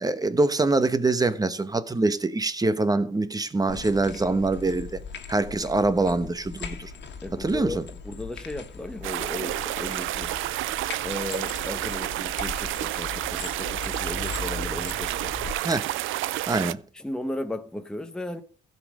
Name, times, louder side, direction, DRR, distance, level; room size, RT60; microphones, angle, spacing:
voice 1, 0.0-5.0 5.3-6.9 7.4-7.8 15.6-15.9 16.5-16.8, right 2 dB, 20° right, 1.1 m, -24 dB
sound 1, 3.7-15.5, left 5 dB, 60° left, 1.7 m, -39 dB
voice 2, 7.2-10.4 11.0-15.3 16.9-18.4, left 1 dB, 5° left, 1.0 m, -35 dB
sound 2, 9.0-16.7, right 15 dB, 85° right, 0.5 m, -30 dB
15.5 x 5.3 x 5.0 m
cardioid pair, 90°, 20 cm